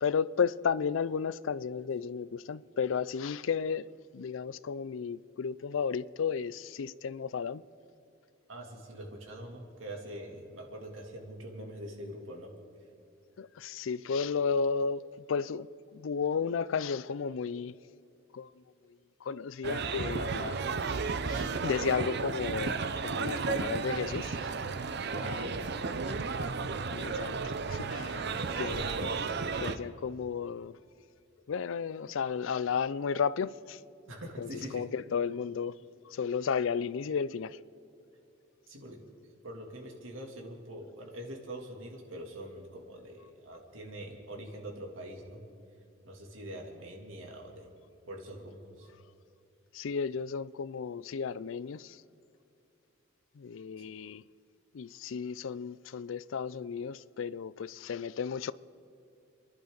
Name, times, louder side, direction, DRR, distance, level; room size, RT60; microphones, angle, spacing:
voice 1, 0.0-3.9 4.1-7.6 13.4-15.7 15.9-17.7 18.3-18.5 19.2-21.0 21.3-22.8 23.0-24.5 25.2-25.5 26.9-27.4 27.6-28.1 28.6-28.8 29.6-30.7 31.5-33.8 34.4-35.8 36.1-37.6 49.7-52.0 53.4-54.2 54.7-58.5, left 6 dB, 75° left, 0.4 m, -33 dB
voice 2, 8.5-12.5 23.2-23.6 25.0-26.5 27.7-29.2 34.1-34.8 38.7-39.0 39.2-45.4 46.0-47.7 48.1-48.9 53.8-53.9, right 1 dB, 80° right, 2.8 m, -44 dB
sound 1, 19.6-29.8, right 4 dB, 55° right, 0.7 m, -33 dB
30.0 x 11.5 x 4.0 m
head